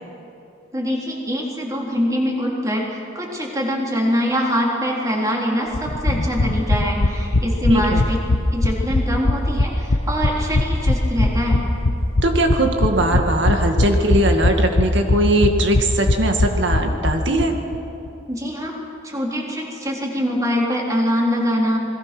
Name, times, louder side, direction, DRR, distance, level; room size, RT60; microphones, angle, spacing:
voice 1, 0.7-8.2 8.5-11.6 18.3-18.8 19.0-21.8, equal, 15° right, -2 dB, 3.8 m, -23 dB
sound 1, 5.7-17.5 17.7-17.8 18.1-18.2, left 2 dB, 75° left, 1.0 m, -20 dB
voice 2, 7.7-8.0 12.2-17.6, right 1 dB, 65° right, 4 dB, 2.0 m, -20 dB
28.0 x 21.0 x 6.2 m, 2.9 s
head